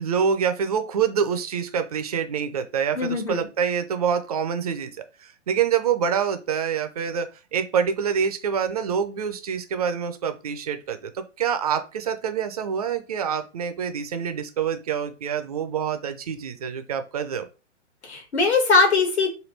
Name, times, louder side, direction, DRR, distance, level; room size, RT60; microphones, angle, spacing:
voice 1, 0.0-4.9 5.2-17.5, right 7 dB, 35° right, 8 dB, 0.4 m, -26 dB
voice 2, 2.9-3.5 18.0-19.3, left 4 dB, 60° left, 2 dB, 1.5 m, -21 dB
3.2 x 2.3 x 3.1 m, 0.31 s
figure-of-eight pair, 120°, 37 cm